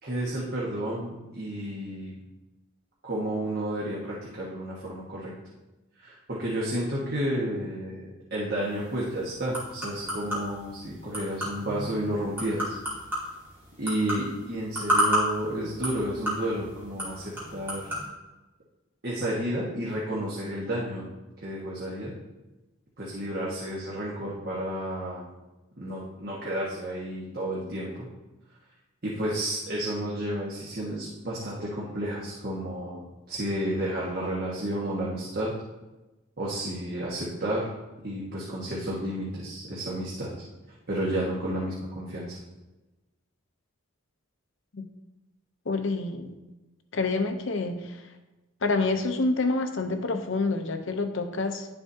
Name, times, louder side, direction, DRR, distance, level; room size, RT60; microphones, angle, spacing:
voice 1, 0.0-2.1 3.0-5.3 6.0-12.7 13.8-17.9 19.0-21.0 21.4-22.1 23.0-25.2 25.8-28.1 29.0-35.5 36.4-37.6 38.0-40.4 40.9-42.4, right 1 dB, 45° right, -5 dB, 1.4 m, -31 dB
sound 1, 8.6-18.1, equal, 10° right, 2.6 m, -32 dB
voice 2, 45.7-46.3 46.9-48.0 48.6-51.7, left 3 dB, 60° left, 7 dB, 0.7 m, -27 dB
11.0 x 6.9 x 2.7 m, 1.1 s
head